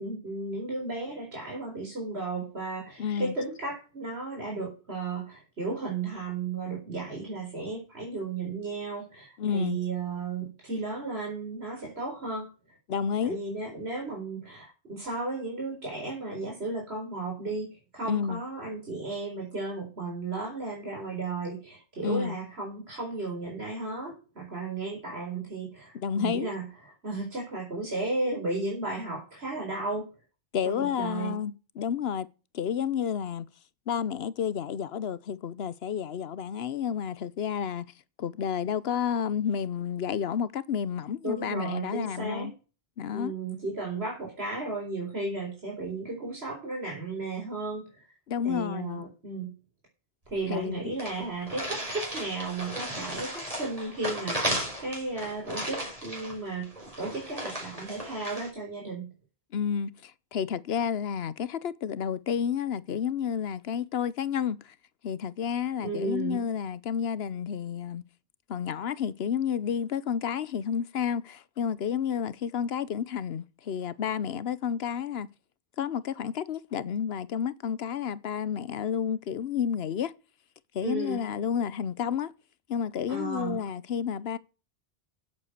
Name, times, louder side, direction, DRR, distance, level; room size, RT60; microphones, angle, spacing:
voice 1, 0.0-12.5 13.2-26.6 27.0-30.1 30.6-31.4 41.2-42.5 43.1-48.1 48.4-49.5 50.3-59.1 65.8-66.4 80.8-81.2 83.1-83.6, right 3 dB, 80° right, 4.5 m, -34 dB
voice 2, 3.0-3.4 9.4-9.8 12.9-13.4 18.0-18.4 22.0-22.4 25.9-26.5 30.5-32.3 32.5-33.5 33.9-37.9 38.2-42.5 43.0-43.3 48.3-49.0 50.5-50.8 59.5-64.7 65.0-68.0 68.5-75.3 75.8-80.1 80.7-82.3 82.7-84.4, left 8 dB, 75° left, 1.0 m, -30 dB
sound 1, 50.3-50.4 50.6-50.7 51.0-58.5, equal, 35° right, 5.3 m, -35 dB
9.6 x 8.2 x 6.6 m
omnidirectional pair, 1.0 m